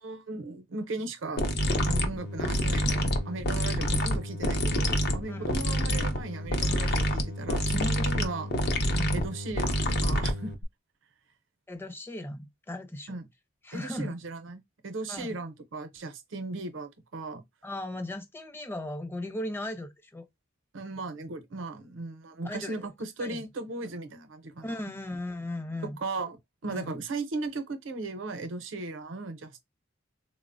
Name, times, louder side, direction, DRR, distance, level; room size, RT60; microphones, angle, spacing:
voice 1, 0.0-1.4 1.8-8.5 9.1-10.5 13.1-13.3 13.7-17.4 20.7-25.0 26.0-26.4 26.6-29.6, right 2 dB, 80° right, 0.6 m, -37 dB
sound 1, 1.4-10.6, equal, 60° left, 0.6 m, -27 dB
voice 2, 8.9-9.3 11.7-13.2 13.6-14.1 15.1-15.4 17.6-20.3 22.4-22.9 23.2-23.5 24.6-26.0 26.7-27.0, left 1 dB, 10° left, 0.5 m, -37 dB
3.8 x 2.1 x 2.5 m
head